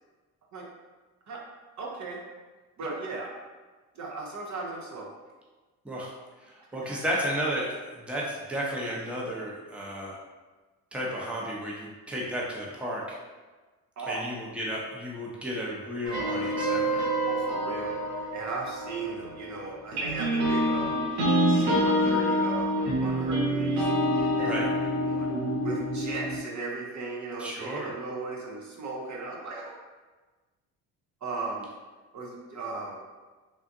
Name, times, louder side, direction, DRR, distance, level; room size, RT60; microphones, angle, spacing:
voice 1, 1.8-2.2 2.8-3.3 3.9-5.1 6.8-7.0 14.0-14.2 17.3-21.2 21.5-25.3 25.6-29.8 31.2-31.7 32.1-33.0, right 3 dB, 45° right, -2 dB, 0.7 m, -37 dB
voice 2, 6.4-7.7 8.1-10.2 10.9-13.2 14.1-17.1 24.4-24.6 27.4-27.9, equal, 5° right, -4 dB, 0.7 m, -33 dB
sound 1, 16.0-19.5 19.9-26.4, equal, 70° right, 1.2 m, -27 dB
3.5 x 2.4 x 2.6 m, 1.3 s
supercardioid pair, 65°, 42 cm